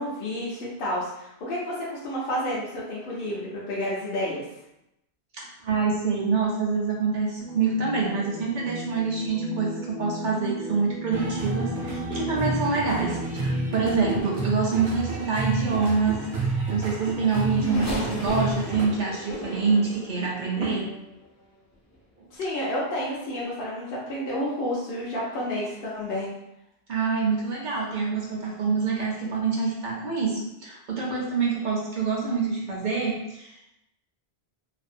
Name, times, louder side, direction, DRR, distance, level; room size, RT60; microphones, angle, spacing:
voice 1, 0.0-4.4 20.6-20.9 22.3-26.3, left 1 dB, 65° left, -6 dB, 0.8 m, -30 dB
voice 2, 5.3-20.8 22.2-22.3 26.9-33.7, right 4 dB, 60° right, -2 dB, 0.6 m, -26 dB
sound 1, 7.4-14.2, equal, 90° left, 0.8 m, -36 dB
sound 2, 11.1-18.9, right 2 dB, 85° right, 0.8 m, -31 dB
Race car auto racing / Accelerating revving vroom, 16.7-21.3 21.9-22.0 23.2-23.3, equal, 30° left, 0.3 m, -34 dB
2.6 x 2.0 x 2.5 m, 0.84 s
omnidirectional pair, 1.0 m